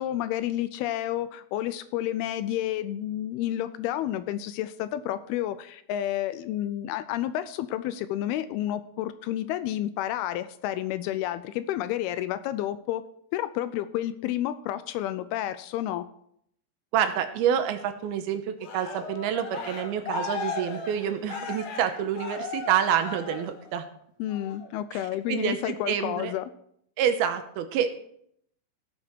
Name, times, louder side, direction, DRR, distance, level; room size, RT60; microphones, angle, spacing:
voice 1, 0.0-13.0 13.3-16.1 24.2-26.5, left 12 dB, 80° left, 13 dB, 2.4 m, -30 dB
voice 2, 16.9-23.9 24.9-25.0 25.3-26.3 27.0-27.9, right 9 dB, 80° right, 8 dB, 2.7 m, -27 dB
Cheering, 18.6-23.8 24.3-24.7, left 4 dB, 60° left, 2.0 m, -36 dB
17.0 x 7.5 x 4.5 m, 0.69 s
omnidirectional pair, 4.6 m